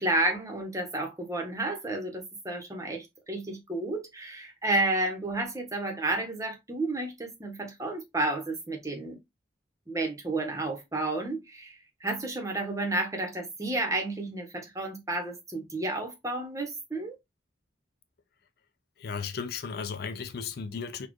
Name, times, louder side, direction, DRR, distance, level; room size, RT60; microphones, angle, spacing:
voice 1, 0.0-9.2 9.9-17.2, right 2 dB, 20° right, 0.9 m, -31 dB
voice 2, 19.0-21.1, left 5 dB, 55° left, 0.4 m, -35 dB
4.1 x 2.3 x 2.9 m
head